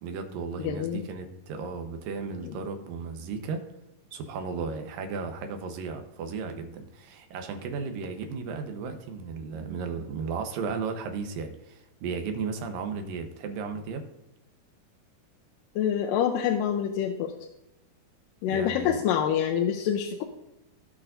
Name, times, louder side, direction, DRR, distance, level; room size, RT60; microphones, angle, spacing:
voice 1, 0.0-3.6 4.1-14.0 18.5-19.0, right 5 dB, 90° right, 6 dB, 2.7 m, -35 dB
voice 2, 0.6-1.0 15.8-17.3 18.4-20.2, left 9 dB, 85° left, 2 dB, 2.3 m, -26 dB
17.0 x 6.0 x 2.6 m, 0.91 s
omnidirectional pair, 3.9 m